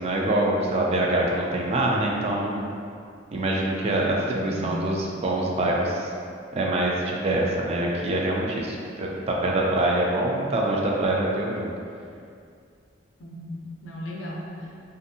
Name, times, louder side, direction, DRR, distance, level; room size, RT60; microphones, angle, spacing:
voice 1, 0.0-2.7 3.3-6.1 6.5-11.7, right 1 dB, 30° right, -2 dB, 0.3 m, -25 dB
voice 2, 4.5-4.8 13.2-14.9, equal, 75° left, -3 dB, 0.5 m, -36 dB
2.5 x 2.5 x 2.6 m, 2.3 s
head